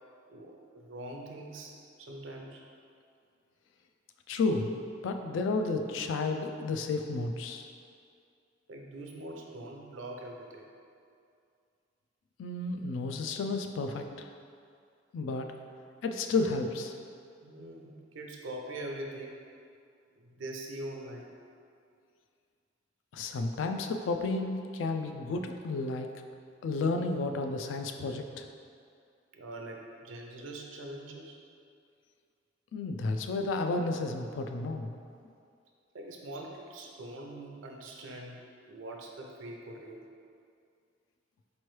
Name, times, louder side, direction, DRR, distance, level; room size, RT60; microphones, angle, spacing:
voice 1, 0.3-1.7 2.0-2.6 8.7-10.6 17.4-19.4 20.2-21.3 29.3-31.4 35.9-40.0, right 1 dB, 85° right, 1 dB, 0.5 m, -43 dB
voice 2, 4.3-4.7 5.0-7.7 12.4-14.3 15.1-15.5 16.0-16.9 23.1-26.1 26.6-28.4 32.7-35.0, left 3 dB, 75° left, 5 dB, 0.3 m, -32 dB
4.3 x 3.0 x 3.1 m, 2.4 s
head